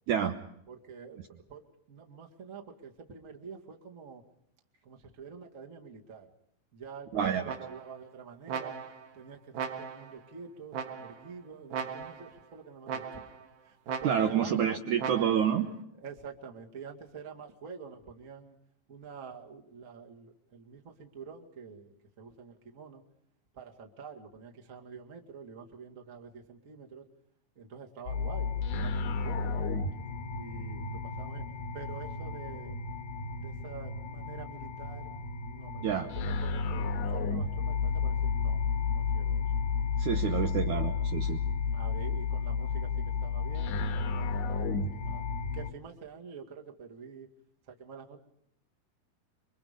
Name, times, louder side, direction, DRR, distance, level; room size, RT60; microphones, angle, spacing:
voice 1, 0.7-4.2 4.8-6.3 6.7-8.8 9.1-13.2 13.6-14.8 15.9-18.5 18.9-23.0 23.5-27.1 27.5-29.5 30.3-31.5 31.7-32.8 33.3-38.6 38.9-39.4 41.7-45.2 45.5-47.3 47.7-48.2, right 6 dB, 35° right, 2 dB, 1.3 m, -47 dB
voice 2, 7.1-7.6 14.0-15.7 35.8-36.1 40.0-41.4, right 8 dB, 85° right, 4 dB, 1.7 m, -28 dB
sound 1, 7.5-8.0 8.5-9.1 9.5-10.2 10.7-11.3 11.7-12.4 12.9-13.5 13.9-14.5 15.0-15.6, right 6 dB, 65° right, 3.0 m, -38 dB
sound 2, 28.1-45.7, left 5 dB, 75° left, 3.5 m, -32 dB
27.5 x 24.0 x 5.2 m, 0.74 s
omnidirectional pair, 5.1 m